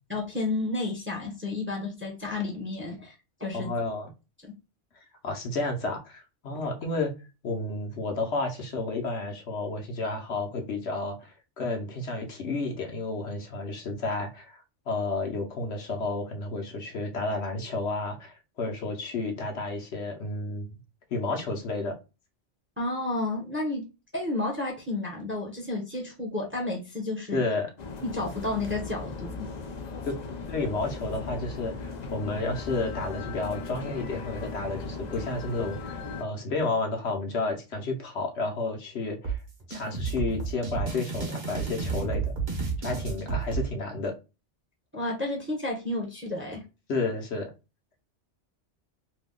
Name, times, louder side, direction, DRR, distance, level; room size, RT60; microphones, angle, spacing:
voice 1, 0.1-3.1 3.4-3.7 22.8-23.8 24.1-27.4 28.0-29.5 44.9-46.6, left 2 dB, 10° right, 0.7 m, -31 dB
voice 2, 3.5-4.1 5.2-7.1 7.4-20.7 21.1-22.0 27.3-27.7 30.0-39.4 39.7-42.3 42.8-44.1 46.9-47.5, left 3 dB, 70° left, 1.1 m, -31 dB
sound 1, 27.8-36.2, left 4 dB, 50° left, 0.5 m, -37 dB
sound 2, 39.2-43.6, right 5 dB, 40° right, 1.1 m, -31 dB
2.7 x 2.3 x 3.6 m
omnidirectional pair, 1.2 m